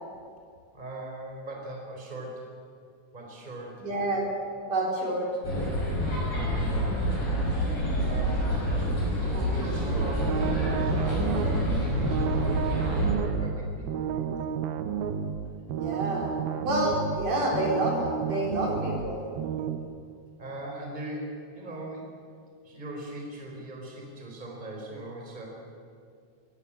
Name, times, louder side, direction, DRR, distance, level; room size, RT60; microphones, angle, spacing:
voice 1, 0.7-2.5 3.1-3.9 6.6-7.2 8.0-9.0 9.3-11.1 11.9-14.4 20.4-22.1 22.6-25.5, right 1 dB, 10° right, 0 dB, 3.9 m, -40 dB
voice 2, 3.8-4.2 4.6-5.3 15.7-19.2, right 1 dB, 60° right, -2 dB, 5.9 m, -28 dB
sound 1, 5.4-13.1, equal, 60° left, 7.6 m, -27 dB
sound 2, 9.8-19.8, right 8 dB, 85° right, 3.0 m, -32 dB
22.5 x 18.0 x 8.8 m, 2.3 s
omnidirectional pair, 4.2 m